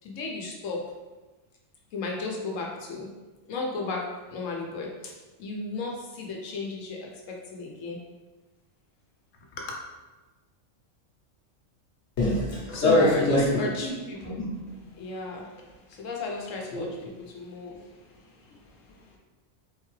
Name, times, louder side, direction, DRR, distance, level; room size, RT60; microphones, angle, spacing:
voice 1, 0.0-0.8 1.9-3.1 3.5-5.1 5.4-8.0 9.5-9.8 12.7-14.4 14.9-19.2, left 3 dB, 90° left, 0 dB, 1.1 m, -34 dB
voice 2, 12.2-14.0 14.2-14.5 16.7-16.9, left 1 dB, 65° left, -4 dB, 1.1 m, -24 dB
4.0 x 3.3 x 3.2 m, 1.2 s
omnidirectional pair, 1.3 m